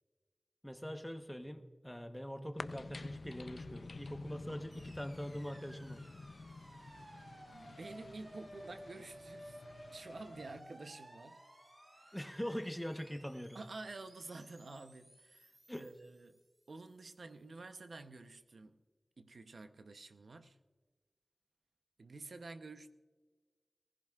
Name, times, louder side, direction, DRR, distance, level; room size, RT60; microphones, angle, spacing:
voice 1, 0.6-6.0 12.1-13.6 15.7-15.9, equal, 5° left, 1.0 m, -43 dB
sound 1, 2.6-10.6, left 3 dB, 70° left, 0.4 m, -50 dB
sound 2, 4.7-16.9, right 1 dB, 60° right, 4.7 m, -56 dB
voice 2, 7.5-9.6 9.9-11.4 11.9-12.2 13.5-16.4 16.7-18.8 19.2-20.6 22.0-22.9, right 3 dB, 85° right, 0.7 m, -50 dB
19.0 x 15.5 x 2.4 m
wide cardioid pair, 75°, 0 cm